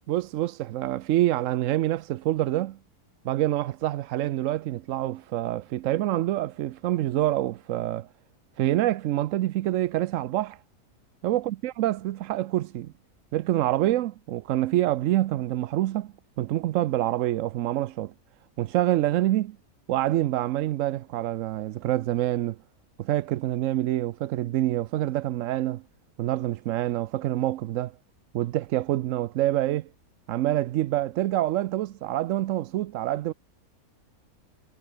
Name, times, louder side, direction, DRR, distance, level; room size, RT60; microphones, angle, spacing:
voice 1, 0.1-2.8 3.2-8.1 8.6-10.6 11.2-12.9 13.3-18.1 18.6-19.6 19.9-22.6 23.0-25.8 26.2-27.9 28.3-29.9 30.3-33.3, right 14 dB, 70° right, 0.8 m, -26 dB
omnidirectional pair, 1.6 m